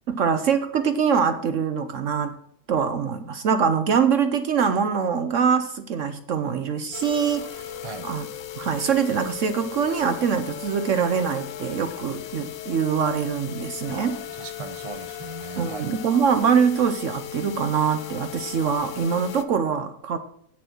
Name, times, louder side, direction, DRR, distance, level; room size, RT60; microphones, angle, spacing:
voice 1, 0.1-2.4 2.7-7.7 8.0-8.3 8.6-14.2 15.6-20.2, right 6 dB, 60° right, 0.8 m, -23 dB
sound 1, 6.9-19.4, left 12 dB, 85° left, 1.4 m, -37 dB
voice 2, 13.9-15.9, right 5 dB, 45° right, 0.4 m, -38 dB
9.5 x 7.1 x 5.9 m
omnidirectional pair, 1.9 m